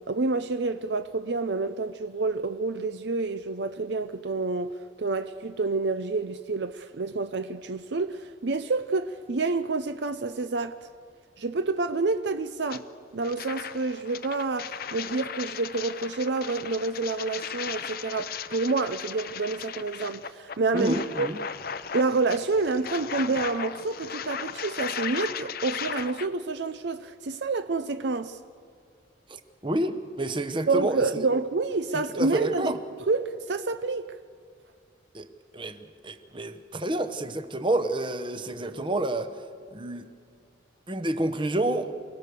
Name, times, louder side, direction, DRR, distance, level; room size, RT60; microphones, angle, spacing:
voice 1, 0.1-10.8 11.4-12.8 13.1-21.3 21.9-28.4 30.7-32.7 33.1-34.2, right 3 dB, 60° right, 0.6 m, -28 dB
sound 1, 12.7-12.8 13.2-26.3, left 7 dB, 50° left, 0.7 m, -36 dB
voice 2, 20.7-21.4 29.3-31.3 32.2-32.8 35.1-35.3 35.5-39.3 39.7-40.1 40.9-41.9, right 1 dB, 25° right, 1.0 m, -29 dB
28.5 x 18.5 x 6.8 m
head